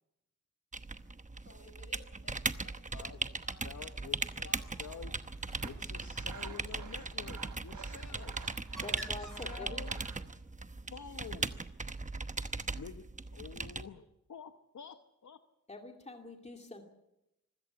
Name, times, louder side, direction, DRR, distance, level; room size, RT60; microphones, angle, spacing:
sound 1, 0.7-13.9, right 3 dB, 25° right, 1.0 m, -39 dB
voice 1, 1.4-4.0 4.2-4.7 8.1-8.3, left 2 dB, 55° left, 7 dB, 5.9 m, -57 dB
voice 2, 2.9-3.3 3.6-4.5 4.8-5.1 5.6-8.5 9.2-10.0 10.9-11.6 12.7-15.4, left 7 dB, 70° left, 8 dB, 1.0 m, -49 dB
Bird, 4.1-10.2, equal, ahead, 7.1 m, -55 dB
Sawing, 5.5-10.3, right 6 dB, 85° right, 1.3 m, -51 dB
voice 3, 8.8-9.8 15.7-16.9, left 2 dB, 20° left, 3 dB, 2.5 m, -46 dB
25.5 x 16.0 x 8.0 m, 0.90 s
wide cardioid pair, 95°, 30 cm